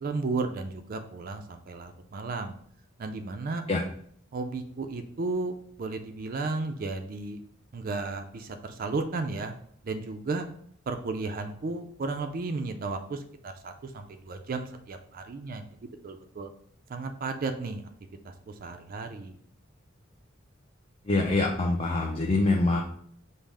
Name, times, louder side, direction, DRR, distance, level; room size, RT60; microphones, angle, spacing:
voice 1, 0.0-2.5 3.0-3.6 4.3-7.4 7.7-9.5 9.8-10.5 10.9-15.6 16.0-16.5 16.9-17.8 18.2-19.4, right 3 dB, 45° right, 6 dB, 0.4 m, -34 dB
voice 2, 21.1-22.8, left 2 dB, 30° left, 1 dB, 0.4 m, -25 dB
5.4 x 2.0 x 4.7 m, 0.62 s
head